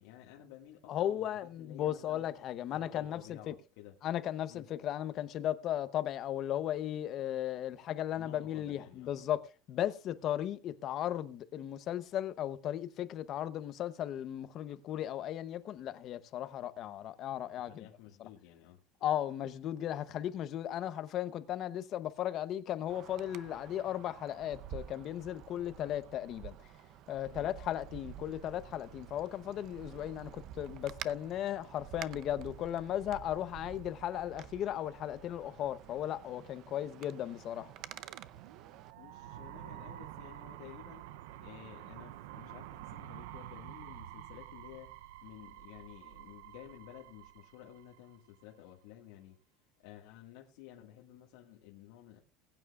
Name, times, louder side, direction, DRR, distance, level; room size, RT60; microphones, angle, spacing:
voice 1, 0.0-1.3 1.6-2.3 2.7-4.0 4.5-4.7 8.1-9.1 17.7-18.8 27.3-27.5 39.0-41.1 41.4-44.9 45.2-49.4 49.8-52.2, left 12 dB, 80° left, 1.8 m, -53 dB
voice 2, 0.9-3.5 4.0-17.9 18.2-18.3 19.0-26.5 27.1-37.7, left 11 dB, 40° left, 0.8 m, -36 dB
Wind, 22.9-38.9, right 12 dB, 45° right, 0.6 m, -50 dB
sound 1, 37.5-48.4, right 13 dB, 80° right, 0.6 m, -49 dB
20.5 x 9.2 x 2.4 m
cardioid pair, 160°, 0 cm